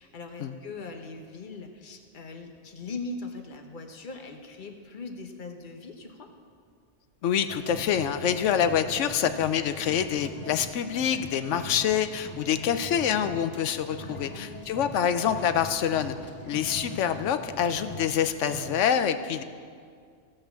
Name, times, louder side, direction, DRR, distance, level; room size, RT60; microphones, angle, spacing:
voice 1, 0.0-6.3 14.0-14.6, left 3 dB, 45° left, 5 dB, 1.1 m, -40 dB
voice 2, 7.2-16.2 16.5-19.4, left 8 dB, 80° left, 10 dB, 1.0 m, -26 dB
sound 1, 7.5-18.8, left 1 dB, 10° left, 1.2 m, -42 dB
15.5 x 5.6 x 7.0 m, 2.1 s
omnidirectional pair, 1.2 m